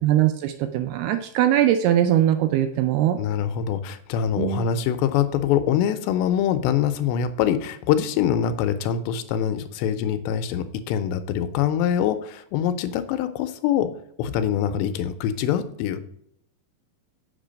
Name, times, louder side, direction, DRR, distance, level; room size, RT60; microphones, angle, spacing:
voice 1, 0.0-3.2 4.4-4.7, right 11 dB, 85° right, 9 dB, 2.3 m, -21 dB
voice 2, 3.2-13.9 14.2-16.0, left 9 dB, 85° left, 10 dB, 2.8 m, -24 dB
8.1 x 6.8 x 5.1 m, 0.70 s
omnidirectional pair, 5.0 m